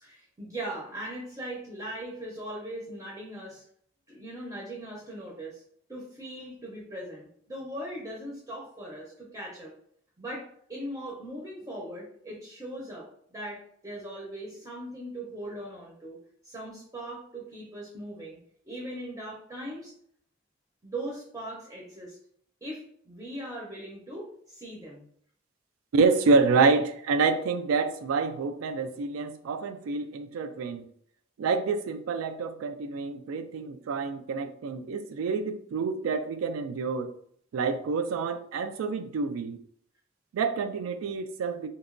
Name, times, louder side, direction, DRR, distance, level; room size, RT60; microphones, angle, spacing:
voice 1, 0.0-3.6 4.1-5.6 5.9-9.7 10.2-16.2 16.4-18.4 18.6-19.9 20.8-22.2 22.6-25.1, right 1 dB, 15° right, 0.5 m, -39 dB
voice 2, 25.9-30.8 31.4-37.1 37.5-39.6 40.3-41.7, right 4 dB, 80° right, 0.3 m, -27 dB
2.8 x 2.1 x 2.5 m
head